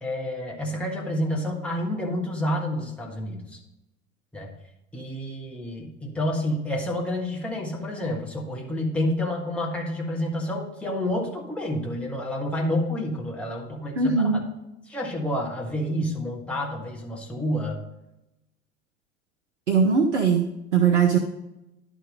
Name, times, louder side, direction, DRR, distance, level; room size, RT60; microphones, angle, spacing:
voice 1, 0.0-3.6 4.3-4.5 4.9-14.4 14.9-17.8, left 1 dB, 5° left, -2 dB, 1.5 m, -29 dB
voice 2, 14.0-14.4 19.7-21.2, right 5 dB, 75° right, 3 dB, 0.8 m, -20 dB
11.0 x 3.7 x 5.2 m, 0.93 s
figure-of-eight pair, 70°, 35 cm